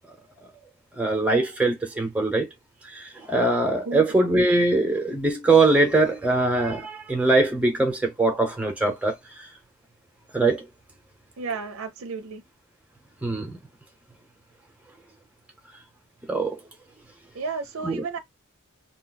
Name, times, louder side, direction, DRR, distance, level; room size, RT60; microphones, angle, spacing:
voice 1, 1.0-2.5 2.9-9.5 10.3-10.7 13.2-13.6 16.3-16.5 17.8-18.0, right 2 dB, 5° right, 0.8 m, -22 dB
voice 2, 11.4-12.4 17.4-18.2, right 4 dB, 65° right, 0.5 m, -32 dB
2.3 x 2.2 x 3.9 m
head